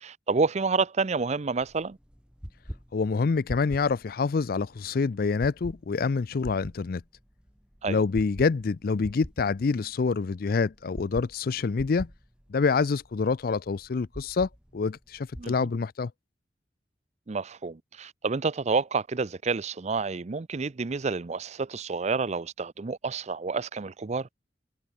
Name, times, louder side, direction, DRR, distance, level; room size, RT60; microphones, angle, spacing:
voice 1, 0.0-2.0 7.8-8.0 15.4-15.5 17.3-24.3, right 4 dB, 40° right, 0.5 m, -29 dB
sound 1, 1.6-15.6, equal, 5° right, 3.3 m, -45 dB
voice 2, 2.9-7.0 7.9-12.1 12.5-16.1, left 4 dB, 55° left, 0.4 m, -26 dB
head